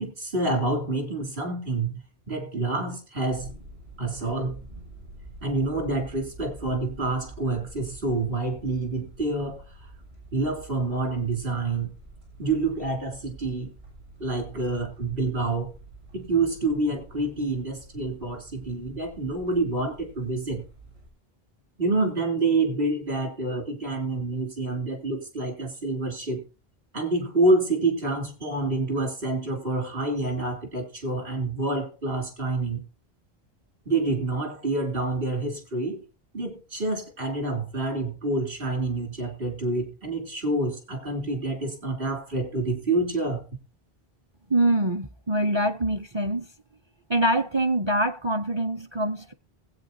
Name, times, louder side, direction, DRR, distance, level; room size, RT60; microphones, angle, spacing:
voice 1, 0.0-2.0 2.3-3.5 4.0-4.6 5.4-9.6 10.3-11.9 12.4-13.7 14.2-15.7 16.1-20.6 21.8-26.4 26.9-32.8 33.8-36.0 36.3-43.4, right 2 dB, 60° right, 3.4 m, -27 dB
sound 1, 3.3-21.1, right 2 dB, 80° right, 6.4 m, -47 dB
voice 2, 44.5-46.5 47.1-49.3, right 1 dB, 35° right, 0.5 m, -24 dB
20.5 x 8.5 x 2.7 m
omnidirectional pair, 1.1 m